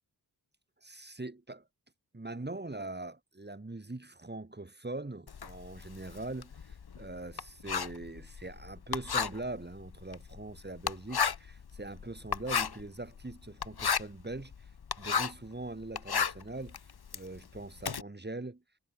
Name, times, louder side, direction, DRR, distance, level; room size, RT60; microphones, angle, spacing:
voice 1, 0.8-1.7 2.1-14.7 15.0-18.6, right 2 dB, 25° right, 7.1 m, -42 dB
Writing, 5.3-15.5 15.8-18.0, left 7 dB, 65° left, 2.0 m, -34 dB
wide cardioid pair, 95°, 41 cm